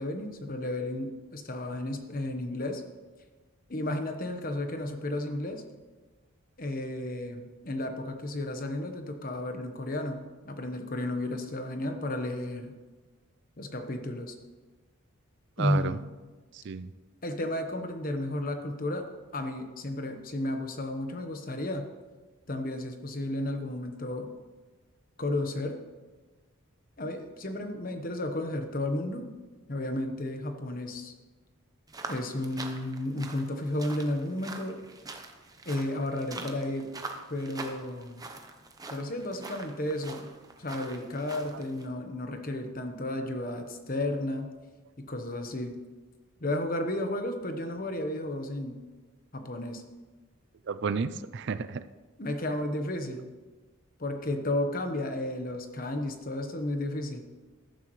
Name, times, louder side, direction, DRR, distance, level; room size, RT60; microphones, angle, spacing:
voice 1, 0.0-2.8 3.7-5.6 6.6-12.7 13.6-14.3 15.6-16.0 17.2-19.1 19.3-21.9 22.5-24.3 25.2-25.8 27.0-29.3 29.7-31.1 32.1-34.8 35.6-36.9 37.3-38.2 38.9-40.3 40.6-44.5 45.0-45.7 46.4-48.8 49.3-49.8 52.2-53.3 54.0-57.2, left 1 dB, 40° left, 6 dB, 1.1 m, -33 dB
voice 2, 15.6-16.0 16.5-16.9 41.5-41.6 50.7-51.8, right 5 dB, 55° right, 14 dB, 0.4 m, -32 dB
sound 1, 31.9-41.9, right 3 dB, 15° right, 0.8 m, -44 dB
14.5 x 11.5 x 3.2 m, 1.3 s
head